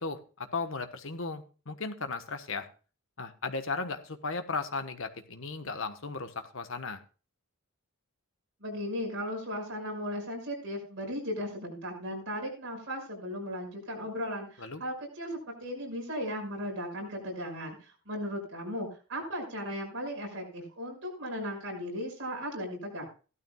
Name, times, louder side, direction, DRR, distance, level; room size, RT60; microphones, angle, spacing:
voice 1, 0.0-2.7 3.2-7.0 14.6-14.8, left 4 dB, 60° left, 8 dB, 1.3 m, -36 dB
voice 2, 8.6-23.1, equal, 55° right, 0 dB, 6.0 m, -36 dB
16.0 x 12.5 x 2.4 m, 0.35 s
head